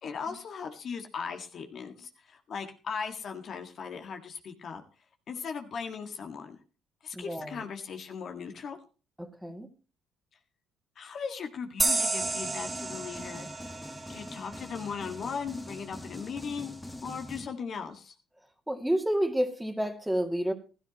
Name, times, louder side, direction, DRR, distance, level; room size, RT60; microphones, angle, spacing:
voice 1, 0.0-4.8 5.3-6.6 7.0-8.8 11.0-13.5 14.1-16.7 17.0-18.1, left 6 dB, 55° left, 6 dB, 1.7 m, -38 dB
voice 2, 7.1-7.6 9.2-9.7 18.7-20.5, right 1 dB, 5° right, 6 dB, 2.4 m, -30 dB
sound 1, 11.8-15.1, right 3 dB, 25° right, 2.7 m, -32 dB
sound 2, 12.1-17.5, left 1 dB, 10° left, 1.3 m, -44 dB
15.5 x 13.0 x 3.0 m, 0.35 s
hypercardioid pair, 55°, 0 cm